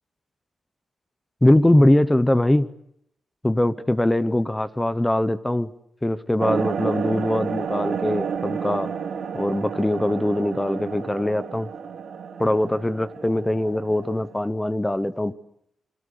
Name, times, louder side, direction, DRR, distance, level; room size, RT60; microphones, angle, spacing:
voice 1, 1.4-2.7 3.4-5.7 6.0-8.9 9.3-11.7 12.4-15.3, left 1 dB, 10° left, 0.9 m, -22 dB
sound 1, 6.4-14.3, right 7 dB, 85° right, 2.6 m, -31 dB
29.0 x 22.0 x 6.7 m
wide cardioid pair, 120°, 0 cm